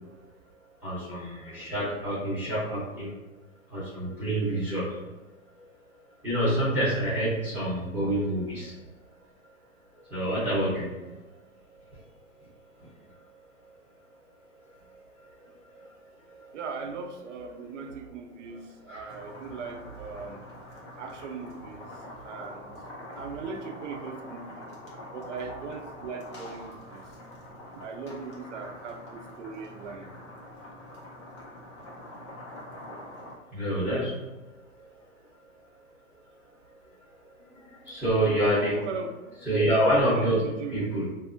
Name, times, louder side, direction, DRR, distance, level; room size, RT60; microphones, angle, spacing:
voice 1, 0.8-3.1 3.7-4.9 6.2-8.7 10.1-11.1 18.9-19.0 33.5-34.2 37.8-38.8 39.5-40.4 40.7-41.1, right 1 dB, 5° right, -9 dB, 0.8 m, -27 dB
voice 2, 1.5-2.0 16.5-20.4 21.0-22.7 23.1-24.6 25.1-27.0 27.8-30.1 31.8-31.9 38.1-39.2 39.9-40.9, right 5 dB, 55° right, 4 dB, 0.6 m, -39 dB
sound 1, 19.1-33.4, left 1 dB, 20° left, 0.4 m, -44 dB
3.3 x 2.7 x 2.6 m, 1.2 s
hypercardioid pair, 145°, 43 cm